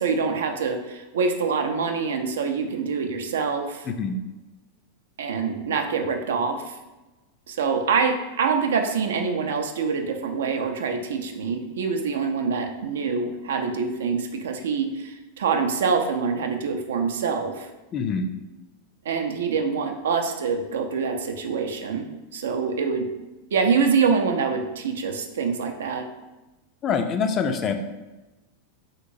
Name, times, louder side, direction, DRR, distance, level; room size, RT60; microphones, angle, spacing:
voice 1, 0.0-3.9 5.2-6.8 7.5-17.7 19.1-22.1 22.3-23.1 23.5-26.1, right 5 dB, 70° right, 5 dB, 0.3 m, -25 dB
voice 2, 3.9-4.2 17.9-18.3 26.8-27.7, left 5 dB, 35° left, 7 dB, 0.3 m, -25 dB
3.0 x 2.9 x 2.6 m, 1.1 s
figure-of-eight pair, 90°, 0 cm